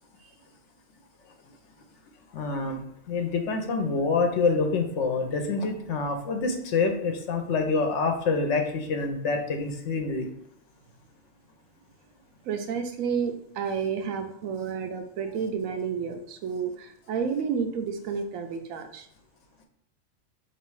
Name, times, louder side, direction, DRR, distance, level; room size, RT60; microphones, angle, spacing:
voice 1, 2.3-2.8 3.1-10.3, left 4 dB, 65° left, 5 dB, 0.9 m, -26 dB
voice 2, 12.4-19.1, right 6 dB, 85° right, 6 dB, 1.0 m, -31 dB
3.1 x 2.9 x 4.6 m, 0.68 s
omnidirectional pair, 1.4 m